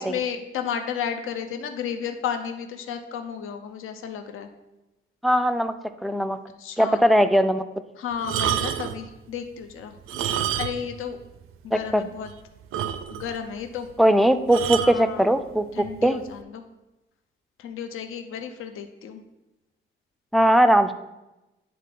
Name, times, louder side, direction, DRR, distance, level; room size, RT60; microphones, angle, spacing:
voice 1, 0.0-4.5 6.6-7.0 8.0-10.0 10.6-11.2 11.6-12.3 13.1-13.9 14.8-15.3 15.7-16.6 17.6-19.2, left 8 dB, 90° left, 6 dB, 0.6 m, -33 dB
voice 2, 5.2-5.7 6.0-6.4 6.8-7.6 11.7-12.1 14.0-15.7 16.0-16.2 20.3-20.9, equal, ahead, 10 dB, 0.3 m, -19 dB
sound 1, 8.2-9.0 10.0-11.0 11.3-11.4 11.9-12.0 12.3-12.4 12.7-13.4 14.5-15.0 15.8-16.1, right 9 dB, 80° right, 0.5 m, -28 dB
10.0 x 3.8 x 3.7 m, 1.0 s
cardioid pair, 130°, 21 cm